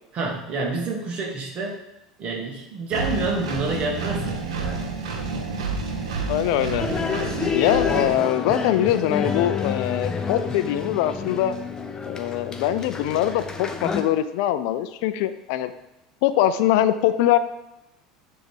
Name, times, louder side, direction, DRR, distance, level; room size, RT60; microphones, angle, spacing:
voice 1, 0.1-1.8 2.2-4.9, right 3 dB, 40° right, -1 dB, 1.9 m, -28 dB
Engine, 2.9-8.1, right 4 dB, 70° right, 1.0 m, -29 dB
voice 2, 6.3-6.8 7.5-11.6 12.0-15.7 16.2-17.4, left 12 dB, 60° left, 12 dB, 0.5 m, -22 dB
sound 1, 6.8-14.0, left 6 dB, 20° left, 0.8 m, -28 dB
9.8 x 3.5 x 4.8 m, 0.90 s
figure-of-eight pair, 75°, 3 cm